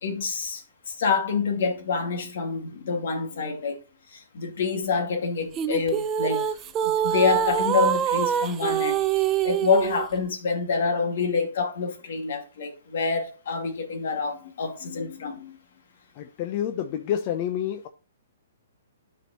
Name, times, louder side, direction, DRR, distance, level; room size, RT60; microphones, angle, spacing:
voice 1, 0.0-3.8 4.1-6.6 6.8-15.6, left 5 dB, 65° left, 2.4 m, -27 dB
sound 1, 5.5-10.1, right 10 dB, 20° right, 0.5 m, -25 dB
voice 2, 16.2-17.9, left 10 dB, 35° left, 0.6 m, -28 dB
12.5 x 4.4 x 2.9 m
hypercardioid pair, 155°, 0 cm